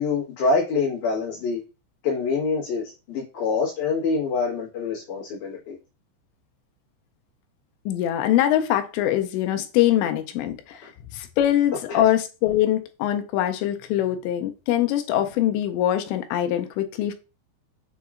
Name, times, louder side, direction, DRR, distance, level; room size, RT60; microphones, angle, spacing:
voice 1, 0.0-1.6 2.0-5.8 11.9-12.0, left 4 dB, 60° left, -6 dB, 2.3 m, -25 dB
voice 2, 7.9-17.1, left 12 dB, 85° left, 7 dB, 2.7 m, -23 dB
7.0 x 2.8 x 2.4 m, 0.31 s
omnidirectional pair, 5.1 m